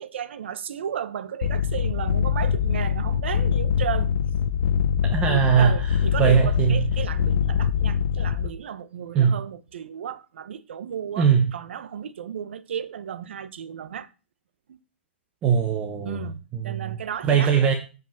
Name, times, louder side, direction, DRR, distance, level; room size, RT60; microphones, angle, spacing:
voice 1, 0.0-4.1 5.3-14.1 14.7-14.8 16.0-17.5, right 8 dB, 65° right, 1.0 m, -34 dB
sound 1, 1.4-8.5, left 8 dB, 60° left, 0.9 m, -23 dB
voice 2, 5.0-6.8 9.1-9.3 11.2-11.4 15.4-16.3 16.5-17.0 17.2-17.7, right 7 dB, 15° right, 0.9 m, -21 dB
8.4 x 5.3 x 7.3 m
hypercardioid pair, 170°, 7 cm